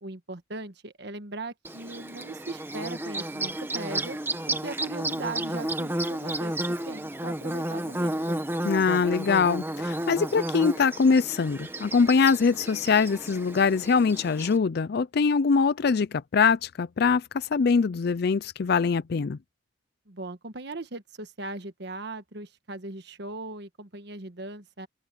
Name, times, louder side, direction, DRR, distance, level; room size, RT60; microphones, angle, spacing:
voice 1, 0.0-4.2 4.5-6.5 6.9-8.4 20.1-24.9, right 2 dB, 60° right, 1.4 m, -39 dB
Bird / Buzz, 1.6-14.6, right 1 dB, 10° right, 1.5 m, -32 dB
voice 2, 8.6-19.4, left 5 dB, 55° left, 0.4 m, -23 dB
open air
head